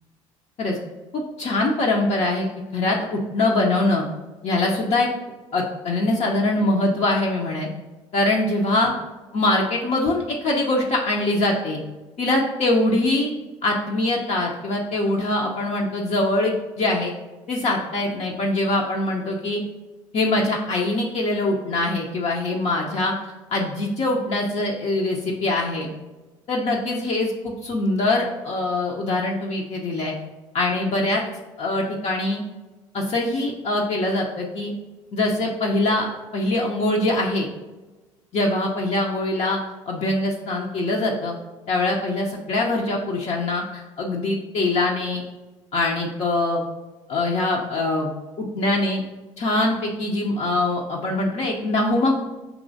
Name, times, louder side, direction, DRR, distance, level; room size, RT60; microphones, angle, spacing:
voice 1, 1.1-2.5 2.7-4.0 4.4-5.1 5.5-7.7 8.1-8.9 9.3-11.8 12.2-13.3 13.6-17.1 17.5-19.6 20.1-23.1 23.5-25.9 26.5-30.1 30.5-31.2 31.6-32.4 32.9-34.7 35.1-37.5 38.3-39.6 39.9-41.3 41.7-45.2 45.7-46.6 47.1-48.1 48.4-49.0 49.4-52.2, left 2 dB, 40° left, -1 dB, 0.6 m, -23 dB
5.9 x 3.0 x 2.6 m, 1.2 s
hypercardioid pair, 60°, 16 cm